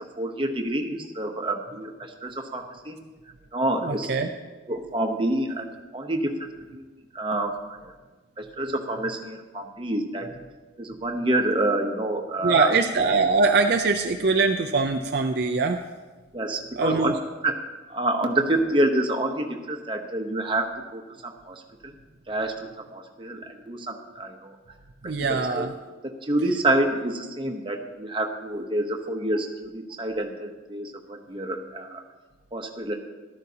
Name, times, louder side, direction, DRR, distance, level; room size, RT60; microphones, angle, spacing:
voice 1, 0.2-3.0 3.5-4.1 4.7-6.8 7.1-7.8 8.4-10.3 10.8-12.7 16.3-17.1 17.4-17.6 17.9-21.9 22.3-24.6 25.0-25.7 26.0-32.0 32.5-32.9, right 1 dB, 25° right, 3 dB, 0.9 m, -28 dB
voice 2, 3.8-4.3 12.4-15.8 16.8-17.1 25.0-25.7, right 4 dB, 50° right, 4 dB, 0.5 m, -22 dB
13.5 x 12.5 x 2.8 m, 1.3 s
head